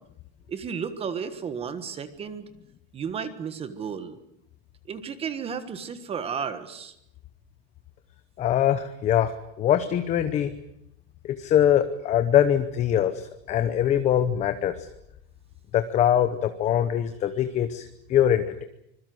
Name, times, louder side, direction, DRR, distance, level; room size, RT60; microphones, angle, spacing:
voice 1, 0.5-2.5 2.9-4.2 4.9-6.9, right 6 dB, 15° right, 12 dB, 1.4 m, -33 dB
voice 2, 8.4-10.5 11.3-13.1 13.5-14.7 15.7-18.6, left 10 dB, 20° left, 10 dB, 0.9 m, -23 dB
25.5 x 21.5 x 7.9 m, 0.78 s
supercardioid pair, 170°, 33 cm